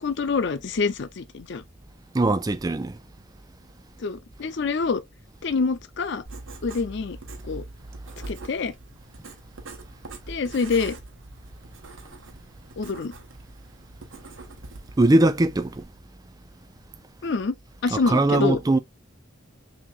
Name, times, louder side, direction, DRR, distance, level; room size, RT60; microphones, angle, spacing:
voice 1, 0.0-1.6 4.0-5.0 5.4-6.2 6.6-7.2 7.4-7.6 8.3-8.7 10.3-11.0 12.8-13.1 17.2-17.5 17.8-18.6, left 4 dB, 60° left, 0.5 m, -26 dB
voice 2, 2.1-3.0 15.0-15.9 17.9-18.8, right 2 dB, 20° right, 0.4 m, -21 dB
Writing, 6.3-15.8, right 2 dB, 75° right, 1.1 m, -43 dB
6.1 x 2.9 x 2.3 m
head